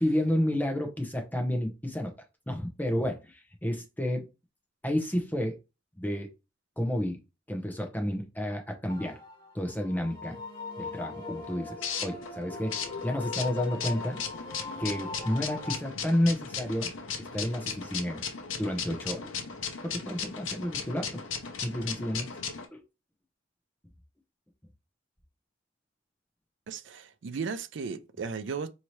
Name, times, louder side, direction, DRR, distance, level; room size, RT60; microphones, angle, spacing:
voice 1, 0.0-2.1 2.5-4.3 4.8-5.6 6.0-6.3 6.8-7.2 7.5-9.2 9.5-10.4 10.8-14.2 14.8-16.9 17.2-18.2 18.6-19.3 19.8-21.2 21.6-22.3 22.7-22.8, left 1 dB, 10° left, 0.8 m, -31 dB
sound 1, 8.9-15.8, left 3 dB, 25° left, 1.7 m, -41 dB
sound 2, 11.1-22.7, left 6 dB, 85° left, 0.7 m, -37 dB
voice 2, 26.7-28.7, right 5 dB, 65° right, 0.4 m, -35 dB
4.5 x 2.8 x 3.1 m
head